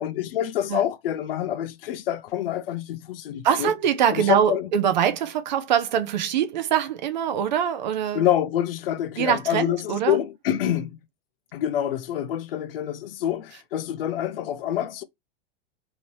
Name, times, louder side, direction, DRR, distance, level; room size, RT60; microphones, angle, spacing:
voice 1, 0.0-3.7 4.1-4.7 8.1-11.0 11.5-15.0, left 11 dB, 60° left, 0.5 m, -26 dB
voice 2, 3.4-8.3 9.2-10.2, right 9 dB, 45° right, 0.5 m, -23 dB
3.1 x 2.8 x 2.6 m
supercardioid pair, 175°, 33 cm